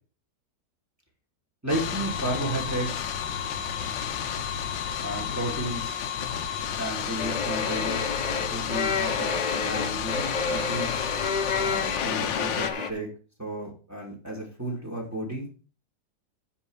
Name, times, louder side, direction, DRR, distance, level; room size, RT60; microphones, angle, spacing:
voice 1, 1.6-3.1 5.0-6.0 6.8-11.1 11.6-13.1 13.4-15.5, right 1 dB, 10° right, -1 dB, 2.7 m, -33 dB
sound 1, 1.7-12.7, left 8 dB, 90° left, 1.6 m, -31 dB
sound 2, 7.2-12.9, left 5 dB, 65° left, 0.4 m, -30 dB
9.8 x 4.3 x 6.5 m, 0.36 s
omnidirectional pair, 1.9 m